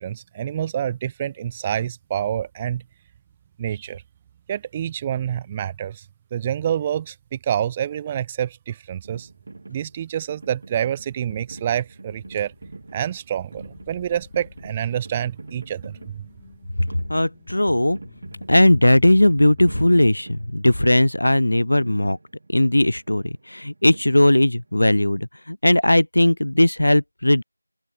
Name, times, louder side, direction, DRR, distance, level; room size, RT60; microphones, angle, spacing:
voice 1, 0.0-2.8 3.6-4.0 4.5-6.0 6.3-9.3 9.7-12.5 12.9-16.3, right 10 dB, 10° right, 0.4 m, -27 dB
sound 1, 9.0-24.8, right 3 dB, 35° right, 1.7 m, -44 dB
sound 2, 12.1-13.2 13.5-20.1, left 6 dB, 15° left, 1.4 m, -48 dB
voice 2, 16.8-18.0 18.5-22.2 22.5-27.4, left 1 dB, 70° left, 0.5 m, -18 dB
open air
figure-of-eight pair, 175°, 0 cm